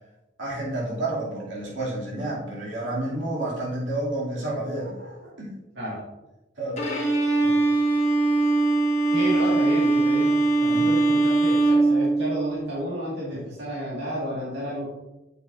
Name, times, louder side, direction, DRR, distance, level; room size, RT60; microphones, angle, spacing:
voice 1, 0.4-4.9 5.4-5.5 6.6-6.9 7.4-7.6 10.7-10.9 13.3-13.4, right 1 dB, 85° right, -6 dB, 2.8 m, -30 dB
voice 2, 4.7-5.3 5.8-6.0 9.1-10.4 10.6-14.9, equal, 70° right, -7 dB, 2.0 m, -32 dB
Bowed string instrument, 6.8-12.7, right 3 dB, 35° left, 1.6 m, -21 dB
8.3 x 6.7 x 2.6 m, 0.98 s
head